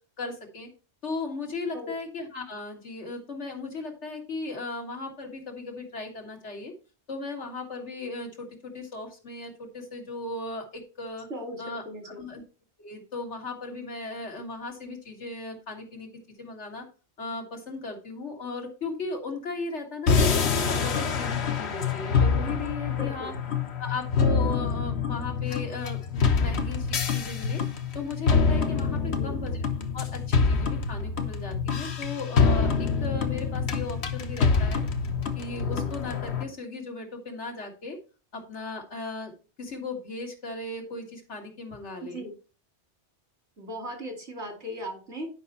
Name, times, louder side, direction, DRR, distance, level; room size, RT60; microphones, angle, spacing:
voice 1, 0.2-0.7 1.0-6.7 7.1-11.3 11.6-12.4 12.8-16.1 16.4-16.8 17.2-23.3 23.8-27.6 27.9-29.6 29.9-34.8 35.4-38.0 38.3-39.3 39.6-42.3, left 3 dB, 90° left, 2 dB, 2.1 m, -36 dB
voice 2, 11.3-12.2 22.9-23.3 29.0-29.3 42.0-42.3 43.6-45.3, equal, 80° right, 2 dB, 2.9 m, -38 dB
sound 1, 20.1-36.4, left 5 dB, 70° left, 1.2 m, -26 dB
10.0 x 5.3 x 4.1 m, 0.35 s
omnidirectional pair, 1.1 m